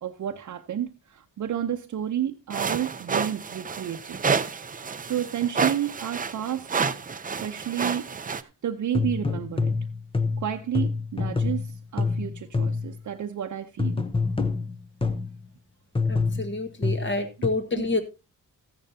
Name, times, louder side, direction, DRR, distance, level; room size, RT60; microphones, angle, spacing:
voice 1, 0.0-4.3 5.0-6.8 7.4-9.8 10.4-14.0 17.8-17.9, right 10 dB, 60° right, 0.8 m, -31 dB
sound 1, 2.5-8.4, right 5 dB, 25° right, 0.5 m, -29 dB
sound 2, 8.9-13.0 13.8-15.4 16.0-17.5, left 4 dB, 15° left, 0.8 m, -27 dB
voice 2, 16.1-18.0, left 2 dB, 35° left, 1.6 m, -28 dB
14.0 x 10.0 x 2.7 m
wide cardioid pair, 135°, 32 cm